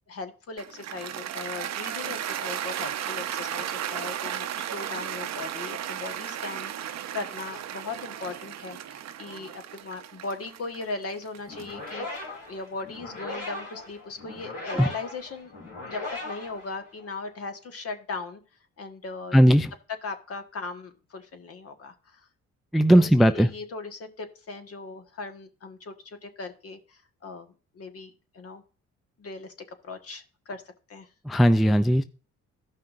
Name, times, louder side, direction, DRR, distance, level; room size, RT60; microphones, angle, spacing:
voice 1, 0.1-12.1 12.5-15.5 15.8-18.4 18.8-19.4 20.0-22.3 22.9-28.6 29.2-29.5 29.8-30.6 30.9-31.1, left 3 dB, 50° left, 6 dB, 1.5 m, -38 dB
Cheering / Applause, 0.6-12.8, right 10 dB, 60° right, 0.7 m, -35 dB
sound 1, 11.5-17.3, left 2 dB, 80° left, 3.5 m, -38 dB
voice 2, 19.3-19.7 22.7-23.5 31.3-32.0, equal, ahead, 12 dB, 0.4 m, -18 dB
15.0 x 5.7 x 2.6 m, 0.37 s
cardioid pair, 90°, 30 cm